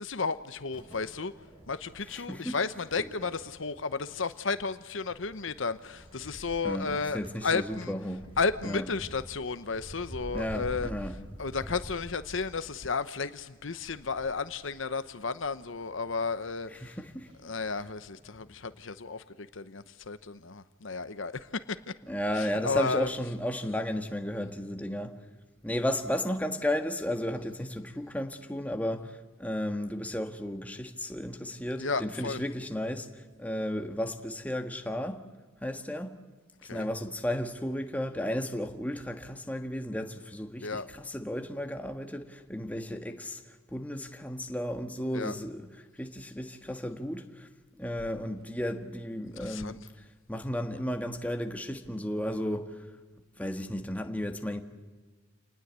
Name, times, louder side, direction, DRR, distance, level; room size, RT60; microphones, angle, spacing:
voice 1, 0.0-1.3 1.7-8.0 8.4-10.9 11.4-17.0 17.4-21.9 22.3-23.1 31.8-32.4 36.6-36.9 40.6-40.9 45.1-45.3 49.4-49.8, left 4 dB, 70° left, 0.9 m, -33 dB
sound 1, 0.7-18.8, equal, 30° right, 7.7 m, -49 dB
voice 2, 2.1-2.6 6.6-8.3 8.6-8.8 10.3-11.2 16.8-17.3 22.1-25.2 25.6-35.2 35.6-36.2 36.7-45.7 45.9-47.5 47.8-49.8 50.3-52.9 53.4-54.6, equal, 5° left, 1.5 m, -34 dB
28.5 x 19.5 x 8.2 m
head